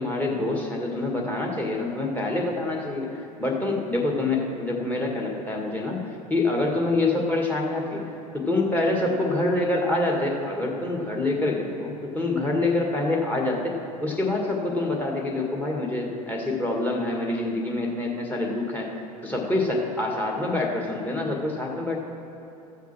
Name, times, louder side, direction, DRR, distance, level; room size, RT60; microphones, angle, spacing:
voice 1, 0.0-3.1 3.4-8.0 8.3-13.7 14.0-18.9 19.2-22.0, left 2 dB, 10° left, 0 dB, 1.9 m, -26 dB
14.5 x 5.9 x 6.1 m, 2.9 s
figure-of-eight pair, 80°, 20 cm